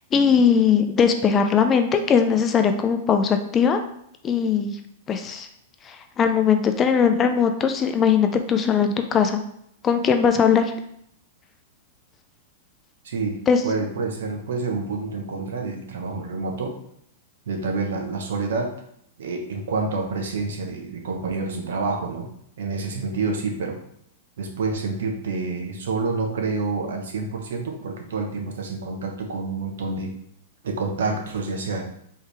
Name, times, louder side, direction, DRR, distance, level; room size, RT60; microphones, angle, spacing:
voice 1, 0.1-3.8 4.2-4.8 5.1-5.5 5.9-9.4 9.8-10.7 13.5-13.6, left 6 dB, 20° left, 7 dB, 0.3 m, -20 dB
voice 2, 13.0-16.8 17.5-18.7 19.2-22.3 22.6-23.8 24.4-30.1 30.6-31.8, right 3 dB, 80° right, 3 dB, 1.0 m, -28 dB
4.7 x 3.3 x 3.4 m, 0.71 s
supercardioid pair, 155°, 0 cm